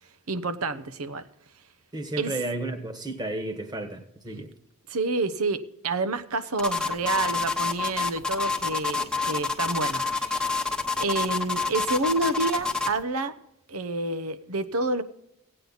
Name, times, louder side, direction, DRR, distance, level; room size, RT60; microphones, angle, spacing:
voice 1, 0.3-1.2 2.2-2.3 4.9-10.5 11.0-13.3 13.7-15.0, right 3 dB, 85° right, 11 dB, 0.9 m, -29 dB
voice 2, 1.9-4.5, right 2 dB, 20° right, 5 dB, 1.3 m, -32 dB
sound 1, 6.6-13.0, left 4 dB, 5° left, 1.0 m, -28 dB
16.5 x 8.9 x 4.0 m, 0.79 s
head